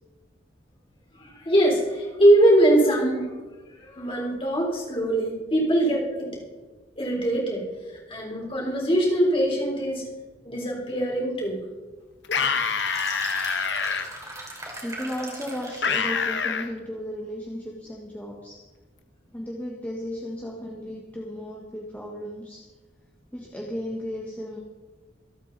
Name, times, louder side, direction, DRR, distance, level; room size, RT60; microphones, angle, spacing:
voice 1, 1.1-3.2 3.8-6.3 7.0-10.0 10.4-11.7 13.9-14.4 14.7-14.8, right 1 dB, 30° left, -2 dB, 3.8 m, -22 dB
sound 1, 12.2-14.0 15.8-16.7, left 6 dB, 65° left, 1.2 m, -26 dB
sound 2, 12.7-16.0, right 2 dB, 15° right, 3.0 m, -38 dB
voice 2, 14.8-18.6 19.3-22.6 23.3-24.6, equal, 10° left, -3 dB, 1.4 m, -35 dB
25.5 x 8.7 x 4.1 m, 1.3 s
head